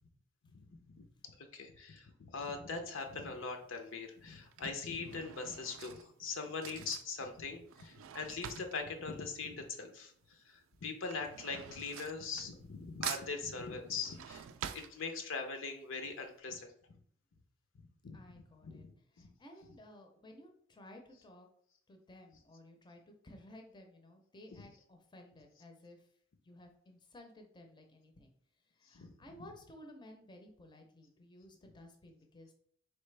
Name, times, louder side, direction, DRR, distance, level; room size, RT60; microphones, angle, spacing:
voice 1, 0.7-14.5 14.7-17.0 17.7-18.9 19.2-19.3 24.5-24.7 28.8-29.1, left 4 dB, 70° left, 5 dB, 0.6 m, -42 dB
Drawer open or close / Cutlery silverware, 3.0-3.4 4.2-10.1 10.4-12.8 13.0-15.6 16.0-16.1 16.3-16.4, right 9 dB, 75° right, 0.3 m, -47 dB
voice 2, 18.1-18.9 19.1-21.5 21.9-26.1 26.4-28.3 28.7-32.5, left 1 dB, 20° left, 3 dB, 0.6 m, -56 dB
4.3 x 3.2 x 3.3 m, 0.63 s
head